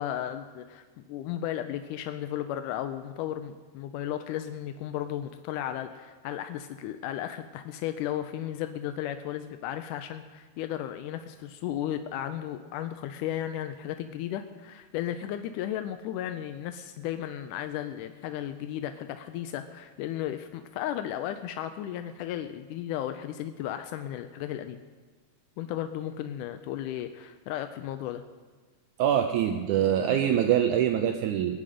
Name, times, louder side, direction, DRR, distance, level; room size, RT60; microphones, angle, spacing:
voice 1, 0.0-24.8 25.6-28.2, left 11 dB, 80° left, 8 dB, 1.8 m, -34 dB
voice 2, 29.0-31.6, right 9 dB, 80° right, 5 dB, 1.8 m, -24 dB
21.5 x 9.3 x 5.0 m, 1.4 s
omnidirectional pair, 4.2 m